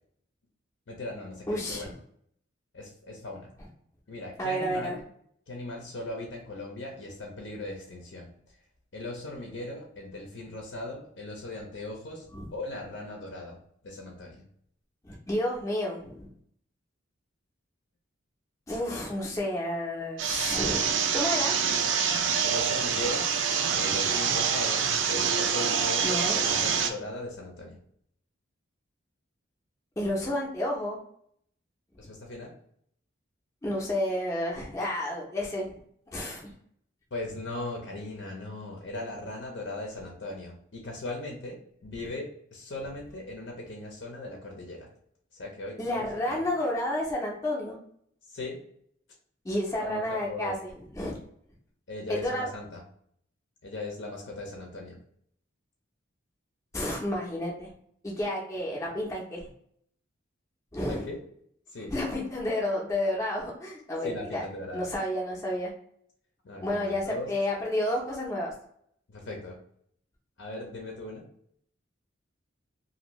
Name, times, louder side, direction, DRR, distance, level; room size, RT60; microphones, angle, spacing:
voice 1, 0.9-1.9 2.7-3.5 4.1-5.0 5.5-8.3 8.9-12.3 12.5-13.6 13.8-14.4 22.2-23.2 23.7-27.8 32.0-32.5 37.1-42.2 42.5-44.9 45.3-46.4 48.3-48.6 49.8-50.6 51.9-52.8 53.6-55.0 60.9-61.2 61.7-61.9 64.0-64.9 66.4-67.3 69.1-69.6 70.4-71.3, left 2 dB, 65° left, 0 dB, 0.6 m, -38 dB
voice 2, 1.5-1.9 4.4-4.9 12.3-12.5 15.0-16.3 18.7-21.5 26.0-26.4 30.0-31.0 32.0-32.1 33.6-35.7 36.1-36.5 45.8-47.8 49.4-50.6 50.9-51.2 52.1-52.5 56.7-57.7 58.0-59.5 60.7-61.0 61.9-64.4 64.7-65.7 66.6-68.5, left 1 dB, 15° left, -3 dB, 0.5 m, -30 dB
sound 1, 20.2-26.9, right 7 dB, 70° right, 0.4 m, -26 dB
2.6 x 2.6 x 3.0 m, 0.66 s
head